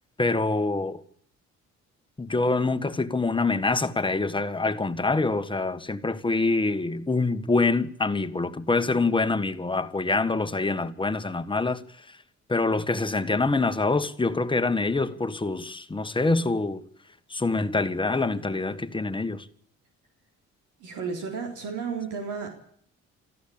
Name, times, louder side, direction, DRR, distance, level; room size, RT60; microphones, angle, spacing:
voice 1, 0.2-1.0 2.2-12.2 12.5-16.8 17.3-19.5, left 3 dB, 15° left, 1.5 m, -25 dB
voice 2, 20.8-22.5, right 5 dB, 85° right, 4.0 m, -32 dB
29.0 x 14.0 x 8.8 m
cardioid pair, 90°, 30 cm